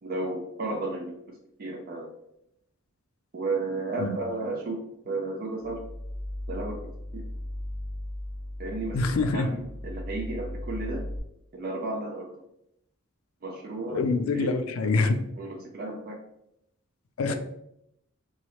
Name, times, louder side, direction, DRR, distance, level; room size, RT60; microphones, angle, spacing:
voice 1, 0.0-2.1 3.3-5.8 6.5-6.8 7.1-7.2 8.6-9.6 9.8-11.0 11.5-12.3 13.4-14.0 14.3-14.5 15.4-16.2 17.2-17.3, right 2 dB, 45° right, 0 dB, 0.4 m, -33 dB
sound 1, 5.6-11.2, left 1 dB, 5° left, 0.9 m, -37 dB
voice 2, 8.9-9.5 13.9-15.2 17.2-17.3, left 3 dB, 85° left, 7 dB, 0.4 m, -25 dB
3.0 x 2.3 x 2.9 m, 0.79 s
head